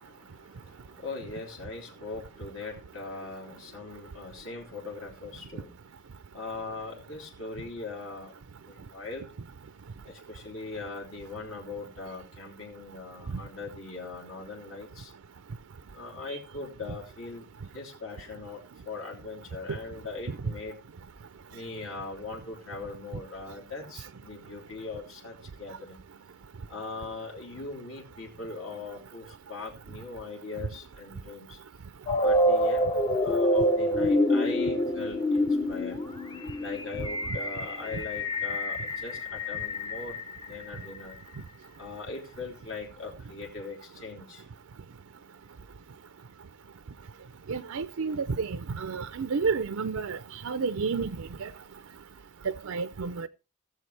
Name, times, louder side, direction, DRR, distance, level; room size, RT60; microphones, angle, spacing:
voice 1, 0.0-5.7 6.3-8.3 8.6-9.3 10.0-15.1 15.9-17.5 17.7-18.6 18.8-20.8 21.5-26.0 26.7-31.6 32.1-32.9 33.2-36.0 36.6-40.2 40.4-41.2 41.8-44.4, left 3 dB, 65° left, 3.2 m, -40 dB
sound 1, 32.1-41.0, left 1 dB, 20° left, 0.7 m, -27 dB
voice 2, 47.5-50.2 50.4-51.5 52.4-53.3, right 5 dB, 70° right, 0.5 m, -30 dB
18.0 x 7.3 x 3.3 m
head